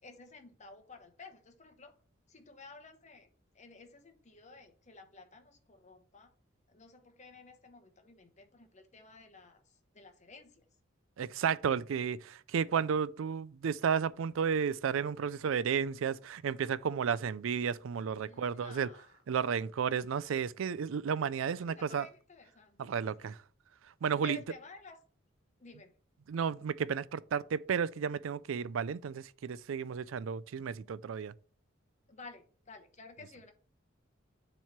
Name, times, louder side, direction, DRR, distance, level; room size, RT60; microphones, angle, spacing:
voice 1, 0.0-1.9 2.3-3.3 3.5-6.3 6.7-10.6 18.2-19.2 21.4-22.8 23.2-23.4 24.2-25.0 25.6-25.9 32.1-33.5, left 3 dB, 35° left, 0.9 m, -53 dB
voice 2, 11.2-18.9 19.3-22.1 22.8-23.4 24.0-24.4 26.3-31.3, right 7 dB, 75° right, 0.4 m, -32 dB
7.1 x 3.1 x 5.8 m
head